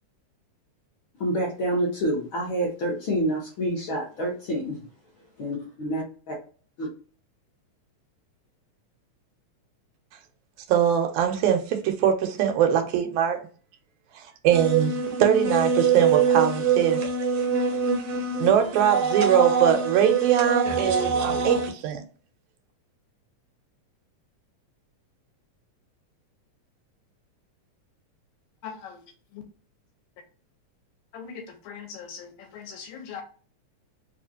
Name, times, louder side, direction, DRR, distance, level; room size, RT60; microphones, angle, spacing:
voice 1, 1.2-4.8 5.4-6.3 6.8-6.9, right 1 dB, 60° left, -2 dB, 1.4 m, -27 dB
voice 2, 10.7-13.4 14.2-14.9 15.2-17.0 18.4-22.0, right 9 dB, 90° right, 6 dB, 2.1 m, -22 dB
sound 1, 14.5-21.7, right 5 dB, 75° right, 1.5 m, -24 dB
voice 3, 28.6-29.0 31.1-33.2, left 6 dB, 80° left, 4 dB, 2.0 m, -40 dB
4.7 x 2.4 x 2.7 m, 0.39 s
omnidirectional pair, 3.4 m